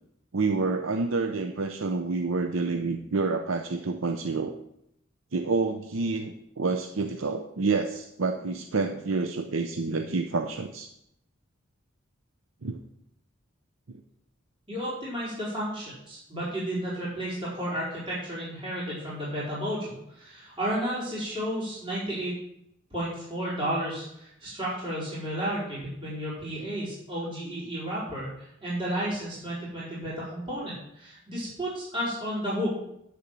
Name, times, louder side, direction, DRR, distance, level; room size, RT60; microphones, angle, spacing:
voice 1, 0.3-4.6 5.3-10.9 12.6-12.8 13.9-14.0, right 3 dB, 80° right, 6 dB, 0.7 m, -28 dB
voice 2, 14.7-22.4 22.9-32.8, equal, 25° right, -9 dB, 4.6 m, -32 dB
9.1 x 6.9 x 7.5 m, 0.78 s
head